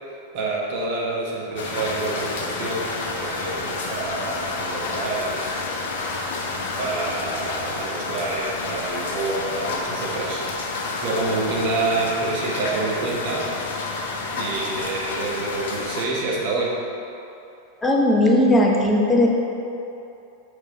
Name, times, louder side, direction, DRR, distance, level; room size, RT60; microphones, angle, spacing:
voice 1, 0.3-2.9 3.2-6.0 6.8-10.4 11.0-13.5 14.4-16.8, right 2 dB, 45° right, -4 dB, 1.0 m, -27 dB
sound 1, 1.6-16.1, left 3 dB, 55° left, 0.7 m, -29 dB
voice 2, 17.8-19.3, left 1 dB, 10° left, -1 dB, 0.8 m, -17 dB
6.4 x 4.7 x 3.8 m, 2.8 s
figure-of-eight pair, 90°, 0 cm